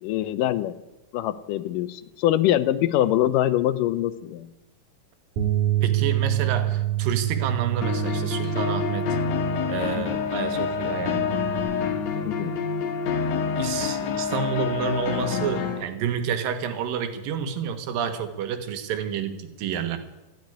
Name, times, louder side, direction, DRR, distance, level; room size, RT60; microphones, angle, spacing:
voice 1, 0.0-0.8 1.1-4.5 10.0-10.1 12.2-12.5, left 13 dB, 80° left, 14 dB, 2.2 m, -24 dB
Bass guitar, 5.4-11.6, right 14 dB, 65° right, 2.9 m, -27 dB
voice 2, 5.8-9.2 9.7-11.4 12.1-12.2 13.6-20.0, right 7 dB, 80° right, 9 dB, 3.0 m, -29 dB
sound 1, 7.8-15.8, left 6 dB, 60° left, 2.2 m, -27 dB
14.5 x 9.6 x 9.7 m, 1.0 s
omnidirectional pair, 4.0 m